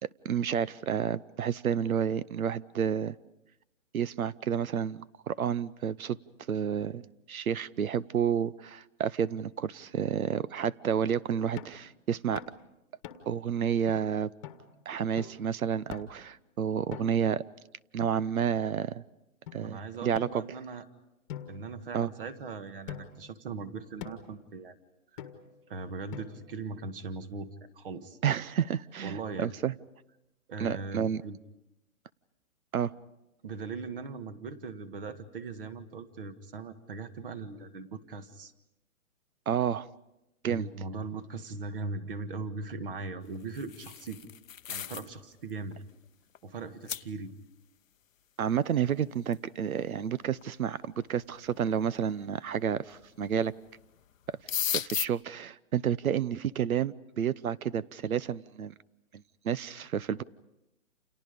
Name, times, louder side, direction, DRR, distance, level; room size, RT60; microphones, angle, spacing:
voice 1, 0.0-3.2 3.9-6.2 6.5-7.0 7.3-12.4 13.3-14.3 14.9-17.4 17.9-19.0 19.5-20.4 21.9-22.1 28.2-29.7 30.6-31.2 32.7-32.9 39.5-39.9 40.4-40.7 48.4-53.5 54.7-58.7 59.4-60.2, right 8 dB, 70° right, 20 dB, 0.9 m, -30 dB
sound 1, 11.6-11.8 12.3-12.6 13.0-13.4 13.9-14.0 14.4-14.6 15.2-15.4 15.9-16.3 16.9-17.3 18.0-18.7 19.5-19.6 20.1-20.8 21.3-22.3 22.9-23.3 24.0-24.4 25.2-25.6 26.1-26.6, left 9 dB, 20° left, 1.5 m, -45 dB
voice 2, 19.6-20.8 21.5-24.8 25.7-27.5 27.8-28.2 29.0-29.5 30.5-31.4 33.4-38.5 40.4-44.2 44.7-45.8 46.4-47.3, right 4 dB, 40° right, 11 dB, 1.7 m, -39 dB
sound 2, 43.3-45.1 45.5-45.7 46.3-46.4 46.9-47.0 49.3-49.4 50.4-50.5 51.2-51.7 52.9-53.4 53.7-53.8 54.1-55.1, left 9 dB, 65° left, 0.8 m, -35 dB
29.5 x 28.5 x 5.2 m, 0.92 s
hypercardioid pair, 165°, 43 cm